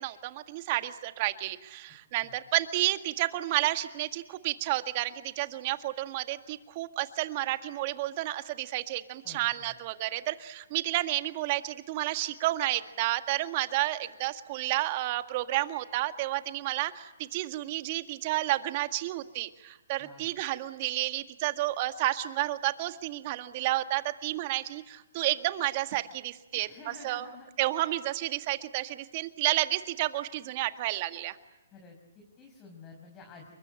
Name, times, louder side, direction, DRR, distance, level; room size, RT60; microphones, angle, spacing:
voice 1, 0.0-26.7 27.0-27.3 27.6-31.4, right 16 dB, 40° right, 9 dB, 1.8 m, -31 dB
voice 2, 9.2-9.8 20.0-20.3 26.5-27.5 31.7-33.5, left 4 dB, 20° left, 1 dB, 5.5 m, -51 dB
29.0 x 23.0 x 8.9 m, 1.0 s
hypercardioid pair, 140°, 0 cm